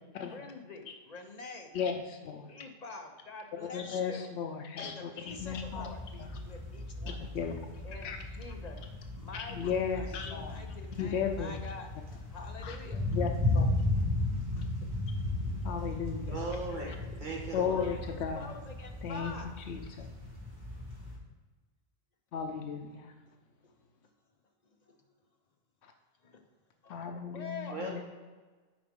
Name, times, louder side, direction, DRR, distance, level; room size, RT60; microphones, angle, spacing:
voice 1, 0.2-1.7 2.5-4.3 4.8-7.4 7.8-8.8 9.1-11.9 12.3-13.0 17.7-19.5 23.6-23.7 24.8-24.9 26.2-26.4 26.8-27.0 27.3-27.8, left 3 dB, 45° left, 4 dB, 0.8 m, -46 dB
voice 2, 1.7-2.5 3.7-5.9 6.2-6.3 7.2-7.5 8.0-8.2 9.3-10.6 11.0-11.6 12.6-12.8 13.1-13.3 13.5-13.7 14.6-14.7 15.6-16.4 16.9-17.0 17.5-18.5 19.0-19.3 19.7-20.0 22.3-23.1 26.9-28.0, left 7 dB, 85° left, 4 dB, 0.9 m, -35 dB
sound 1, 5.3-21.2, left 2 dB, 20° right, 1.3 m, -36 dB
voice 3, 16.3-16.9 17.2-17.8 27.7-28.0, right 2 dB, 45° right, -3 dB, 1.7 m, -37 dB
8.6 x 4.9 x 3.6 m, 1.3 s
omnidirectional pair, 1.1 m